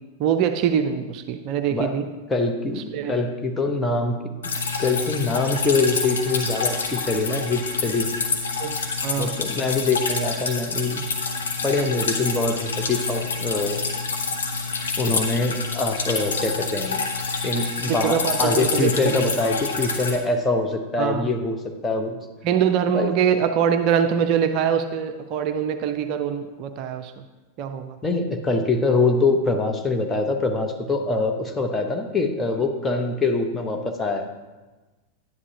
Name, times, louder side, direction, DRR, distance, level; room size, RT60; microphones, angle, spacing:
voice 1, 0.2-2.1 2.9-3.2 8.6-9.3 10.5-10.6 16.0-16.1 17.8-19.3 21.0-21.3 22.4-27.1 27.6-28.0, right 8 dB, 40° right, 7 dB, 0.5 m, -23 dB
voice 2, 2.3-4.2 4.4-4.5 4.8-8.2 9.2-11.0 11.6-13.9 15.0-17.0 17.4-22.2 22.9-23.1 28.0-34.3, left 3 dB, 15° left, 4 dB, 0.9 m, -24 dB
Drip, 4.4-20.1, left 4 dB, 65° left, 1.0 m, -27 dB
10.5 x 9.7 x 2.9 m, 1.2 s
figure-of-eight pair, 90°, 0 cm